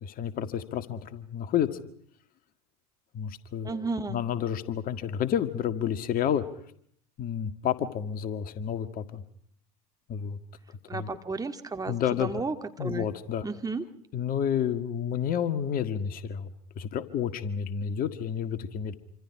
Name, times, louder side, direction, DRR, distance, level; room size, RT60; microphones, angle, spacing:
voice 1, 0.0-1.7 3.1-6.4 7.2-9.2 10.1-10.4 10.9-11.1 11.9-12.3 12.8-13.4 14.1-19.0, left 9 dB, 45° left, 11 dB, 1.9 m, -30 dB
voice 2, 3.6-4.2 10.9-13.1 13.4-13.8, right 3 dB, 15° right, 7 dB, 2.1 m, -33 dB
27.0 x 26.0 x 4.9 m, 0.65 s
hypercardioid pair, 80°, 20 cm